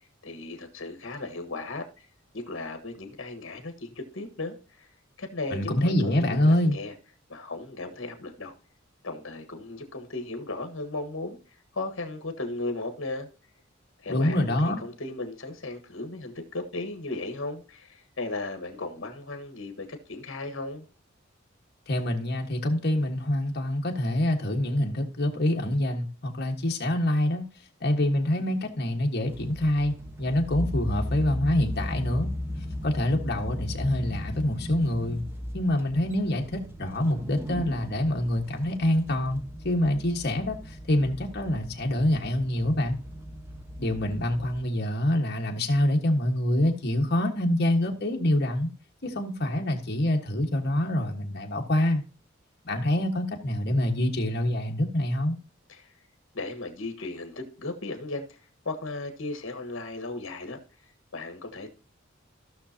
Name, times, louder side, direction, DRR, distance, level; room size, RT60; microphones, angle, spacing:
voice 1, 0.2-2.0 2.3-4.9 5.2-6.9 7.3-8.5 9.0-11.4 11.7-13.3 14.0-20.8 55.7-55.9 56.3-58.4 58.6-60.6 61.1-61.7, left 2 dB, 70° left, 1.5 m, -36 dB
voice 2, 5.5-6.8 14.1-14.8 21.9-27.4 27.8-29.9 30.2-32.3 32.8-35.2 35.5-43.0 43.8-48.7 49.0-52.0 52.6-55.3, left 1 dB, 55° left, 1.5 m, -26 dB
sound 1, 29.3-44.6, left 1 dB, 10° right, 0.8 m, -36 dB
15.5 x 6.0 x 2.8 m
head